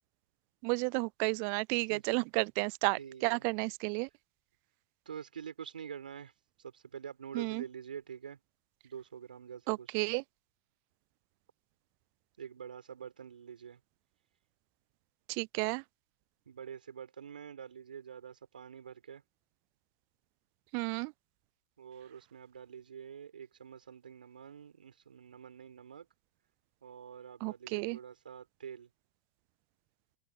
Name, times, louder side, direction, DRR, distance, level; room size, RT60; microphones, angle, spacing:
voice 1, 0.6-4.1 7.3-7.6 9.7-10.2 15.3-15.8 20.7-21.1 27.4-28.0, right 35 dB, 55° right, 0.4 m, -32 dB
voice 2, 1.9-2.2 3.0-3.5 5.1-6.3 6.6-8.4 8.8-10.1 12.4-13.8 16.5-19.2 21.8-26.1 26.8-28.9, right 8 dB, 85° right, 5.8 m, -47 dB
hypercardioid pair, 95°, 5 cm